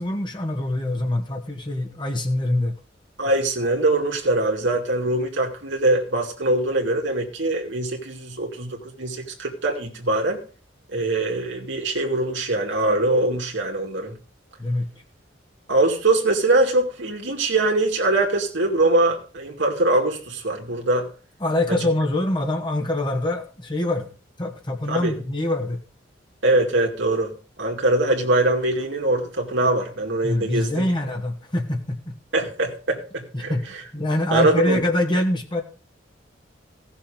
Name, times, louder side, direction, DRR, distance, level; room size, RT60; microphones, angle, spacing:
voice 1, 0.0-2.7 14.6-14.9 21.4-24.1 24.4-25.8 30.2-32.1 33.3-33.6 33.9-35.6, left 1 dB, 25° left, 3 dB, 1.6 m, -24 dB
voice 2, 3.2-10.4 10.9-14.2 15.7-21.1 24.9-25.1 26.4-30.9 32.3-33.5 34.3-34.8, right 2 dB, 70° right, 1 dB, 2.3 m, -22 dB
17.0 x 6.8 x 5.0 m, 0.37 s
head